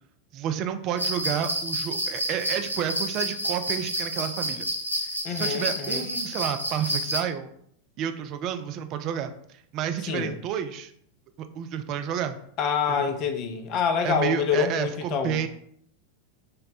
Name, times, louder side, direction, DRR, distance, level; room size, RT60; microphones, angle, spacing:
voice 1, 0.3-4.7 5.0-7.5 8.0-10.9 11.6-12.4 13.0-13.1 14.0-15.5, right 9 dB, 40° right, 8 dB, 0.3 m, -30 dB
sound 1, 1.0-7.2, equal, 85° left, 0.6 m, -30 dB
voice 2, 5.2-6.1 10.1-10.4 12.6-15.4, left 7 dB, 40° left, 6 dB, 0.5 m, -26 dB
3.6 x 2.1 x 4.0 m, 0.67 s
figure-of-eight pair, 90°, 0 cm